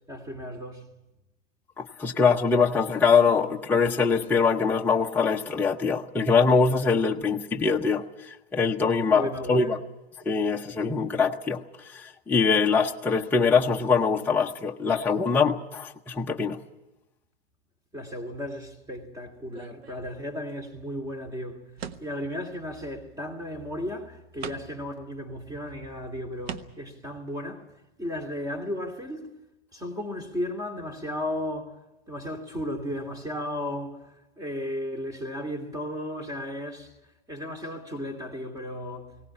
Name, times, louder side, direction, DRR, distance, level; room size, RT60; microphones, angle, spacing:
voice 1, 0.1-0.9 9.1-9.8 17.9-21.7 22.0-27.7 28.0-29.3 29.7-31.8 32.1-36.9 37.3-39.3, left 1 dB, 10° right, 2.7 m, -35 dB
voice 2, 1.8-9.8 10.2-11.6 11.9-16.6, left 5 dB, 5° left, 0.8 m, -23 dB
sound 1, 19.5-20.5 21.8-22.3 23.6-23.7 24.4-24.9 25.7-25.8 26.4-27.0, right 7 dB, 80° right, 1.3 m, -40 dB
19.5 x 18.0 x 9.8 m
hypercardioid pair, 135°, 31 cm